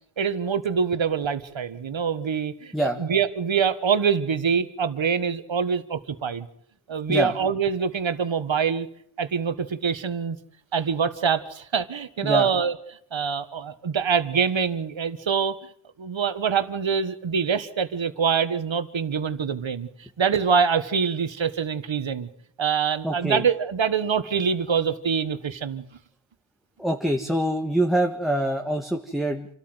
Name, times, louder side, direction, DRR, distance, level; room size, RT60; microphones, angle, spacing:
voice 1, 0.2-2.7 3.0-6.5 6.9-8.9 9.2-10.4 10.7-12.7 13.1-15.6 16.0-19.9 20.2-22.3 22.6-25.8, right 6 dB, 65° right, 12 dB, 1.6 m, -25 dB
voice 2, 23.0-23.4 26.8-29.5, right 1 dB, ahead, 2 dB, 1.8 m, -24 dB
27.5 x 13.0 x 8.0 m, 0.71 s
wide cardioid pair, 70°, 49 cm